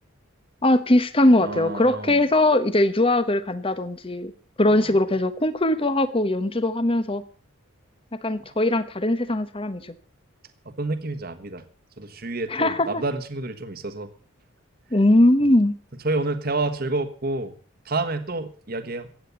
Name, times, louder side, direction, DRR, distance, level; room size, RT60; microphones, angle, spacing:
voice 1, 0.6-4.3 4.6-7.2 8.2-9.9 12.5-12.9 14.9-15.7, left 1 dB, 25° left, 13 dB, 1.1 m, -20 dB
voice 2, 1.4-2.2 4.7-5.0 10.6-11.6 12.0-14.1 16.0-17.5 17.8-19.1, right 2 dB, 45° right, 9 dB, 1.4 m, -29 dB
15.0 x 9.0 x 7.0 m, 0.42 s
head